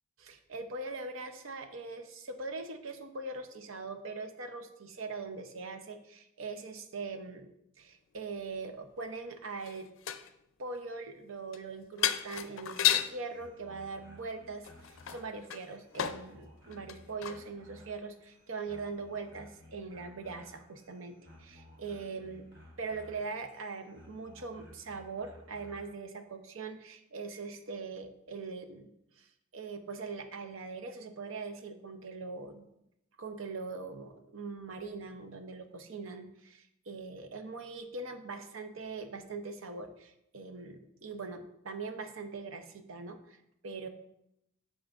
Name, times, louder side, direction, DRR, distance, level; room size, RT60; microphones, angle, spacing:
voice 1, 0.2-7.5 7.8-9.9 10.6-22.5 22.8-28.9 29.2-32.6 33.2-43.9, right 4 dB, 75° right, 7 dB, 0.7 m, -42 dB
sound 1, 9.6-10.3 11.5-11.6 12.0-13.2 14.6-16.3 16.7-17.4 18.0-18.1, left 11 dB, 75° left, 0.4 m, -32 dB
sound 2, 12.8-26.0, left 1 dB, 55° right, 1.3 m, -57 dB
8.5 x 6.3 x 2.4 m, 0.81 s
head